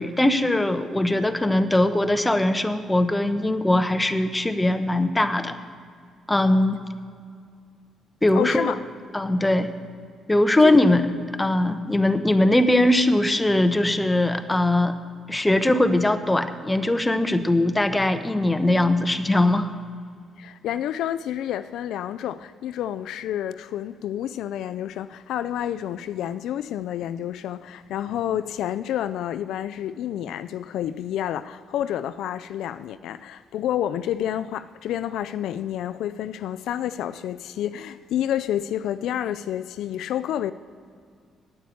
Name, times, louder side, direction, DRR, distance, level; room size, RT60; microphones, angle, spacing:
voice 1, 0.0-5.6 6.3-6.8 8.2-8.7 9.1-9.7 10.3-11.1 11.4-15.0 15.3-19.7, left 1 dB, 15° left, 0.9 m, -21 dB
voice 2, 8.3-8.8 10.6-10.8 20.4-40.5, left 11 dB, 80° left, 0.4 m, -29 dB
9.3 x 9.3 x 8.5 m
cardioid pair, 90°, 0 cm